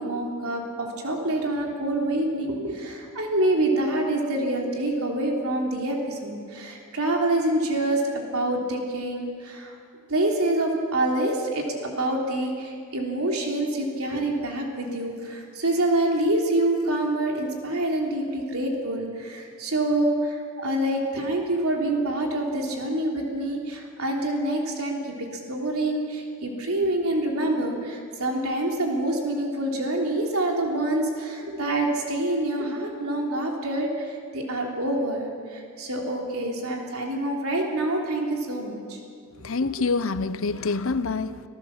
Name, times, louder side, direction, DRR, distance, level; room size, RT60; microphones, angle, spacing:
voice 1, 0.0-9.7 10.1-39.0, right 1 dB, 80° right, 3.4 m, -26 dB
voice 2, 39.4-41.4, left 4 dB, 65° left, 0.8 m, -26 dB
26.0 x 14.5 x 7.3 m
head